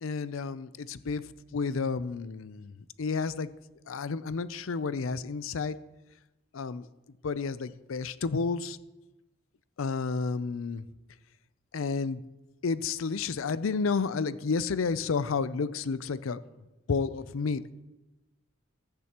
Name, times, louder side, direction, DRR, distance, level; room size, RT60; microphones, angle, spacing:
voice 1, 0.0-3.5 3.9-5.8 6.5-6.9 7.2-8.8 9.8-10.8 11.7-12.2 12.6-16.4 16.9-17.6, left 4 dB, 80° left, 15 dB, 0.5 m, -31 dB
15.0 x 10.5 x 3.0 m, 1.0 s
head